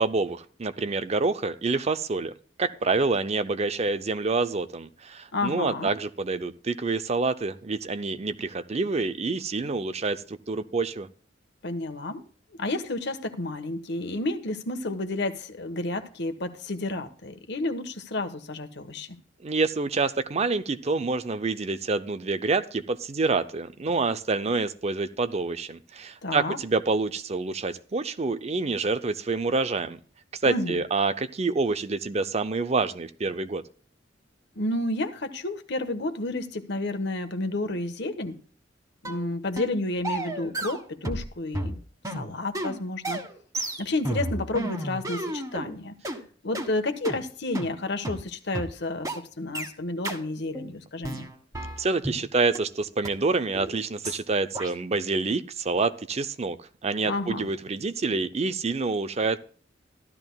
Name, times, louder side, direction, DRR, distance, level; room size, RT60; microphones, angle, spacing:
voice 1, 0.0-2.3 2.6-11.1 19.4-30.0 30.3-33.6 51.8-56.6 56.8-59.4, right 3 dB, 35° right, 0.5 m, -27 dB
voice 2, 5.3-5.9 11.6-12.2 12.6-19.2 26.2-26.6 30.4-30.8 34.6-38.4 39.0-41.8 42.1-43.2 43.8-45.9 46.4-51.3 57.0-57.5, left 2 dB, 65° left, 1.2 m, -31 dB
sound 1, 39.0-39.2 39.6-39.8 40.0-41.3 41.5-45.7 46.0-46.2 46.5-46.7 47.0-47.2 47.5-47.7 48.0-48.2 48.5-48.7 49.0-49.2 49.5-49.7 50.0-50.2 50.5-50.7 51.0-52.2 52.5-52.6 53.0-53.1 53.5-53.7 54.0-54.2 54.5-54.7, right 1 dB, 20° right, 1.6 m, -32 dB
14.5 x 12.5 x 2.3 m
head